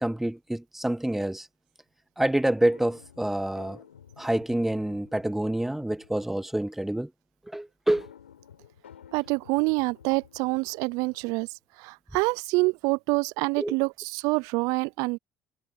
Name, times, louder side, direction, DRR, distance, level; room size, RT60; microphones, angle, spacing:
voice 1, 0.0-1.5 2.2-3.8 4.2-7.1 7.5-8.1 13.6-13.8, right 1 dB, 5° right, 0.3 m, -27 dB
sound 1, 2.6-6.3 7.9-11.5, left 9 dB, 90° left, 5.5 m, -53 dB
voice 2, 9.1-11.5 11.8-15.2, right 27 dB, 65° right, 0.6 m, -26 dB
hypercardioid pair, 60°, 6 cm